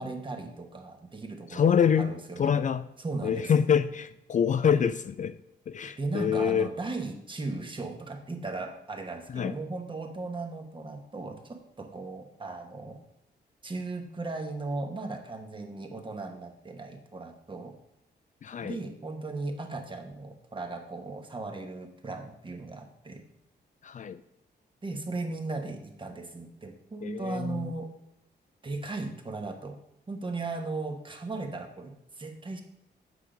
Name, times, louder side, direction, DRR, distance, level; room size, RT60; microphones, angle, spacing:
voice 1, 0.0-2.5 3.0-3.5 6.0-13.0 13.6-17.7 18.6-23.2 24.8-27.9 28.6-29.8 30.1-32.6, right 3 dB, 30° right, 4 dB, 1.3 m, -37 dB
voice 2, 1.5-2.1 2.4-2.8 3.2-5.4 5.7-6.7 9.3-9.5 18.4-18.8 23.8-24.2 27.0-27.7, left 7 dB, 45° left, 12 dB, 0.4 m, -26 dB
8.3 x 5.3 x 5.1 m, 0.79 s
cardioid pair, 90°, 18 cm